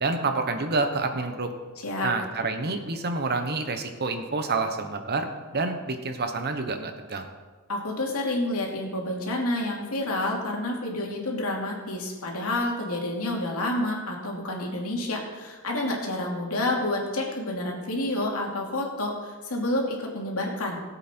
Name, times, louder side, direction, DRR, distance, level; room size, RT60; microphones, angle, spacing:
voice 1, 0.0-1.5 2.0-7.3, right 3 dB, 45° right, 6 dB, 1.1 m, -28 dB
voice 2, 1.8-2.1 7.7-20.8, left 1 dB, 70° left, -1 dB, 2.7 m, -29 dB
17.5 x 8.2 x 4.5 m, 1.4 s
head